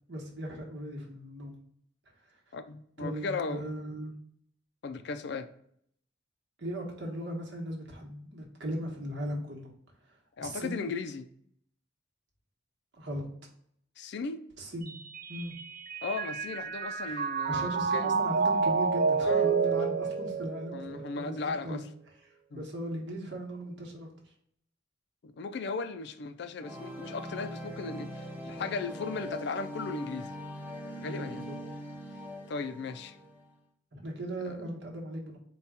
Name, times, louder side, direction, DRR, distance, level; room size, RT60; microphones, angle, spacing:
voice 1, 0.1-1.6 3.0-4.1 6.6-9.7 10.4-10.8 13.0-13.2 14.6-14.9 15.3-15.5 17.0-21.8 22.3-24.1 31.1-31.6 33.9-35.4, right 1 dB, 70° right, 0 dB, 1.1 m, -38 dB
voice 2, 2.5-3.7 4.8-5.5 10.4-11.3 14.0-14.5 16.0-18.1 19.2-19.5 20.7-21.8 22.5-22.7 25.2-30.3 31.0-31.5 32.5-33.2 34.4-34.6, left 4 dB, 65° left, 9 dB, 0.4 m, -37 dB
Mallet percussion, 14.9-21.3, right 5 dB, 50° right, 0.3 m, -29 dB
sound 1, 26.6-33.5, equal, 10° right, 0.6 m, -41 dB
4.1 x 2.3 x 3.5 m, 0.67 s
head